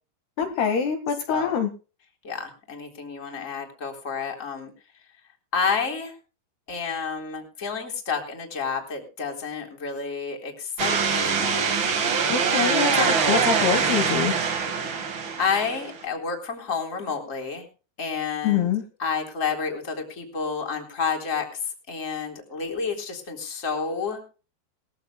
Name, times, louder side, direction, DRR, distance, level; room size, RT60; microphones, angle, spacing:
voice 1, 0.4-1.7 12.3-14.3 18.4-18.8, left 7 dB, 65° left, 5 dB, 3.5 m, -24 dB
voice 2, 2.2-4.7 5.5-6.1 6.7-11.7 15.4-17.7 18.0-18.7 19.0-21.5 21.9-24.2, left 5 dB, 20° left, 2 dB, 3.5 m, -30 dB
sound 1, 10.8-16.0, right 6 dB, 85° right, 1.0 m, -24 dB
21.5 x 15.0 x 2.2 m, 0.35 s
omnidirectional pair, 5.3 m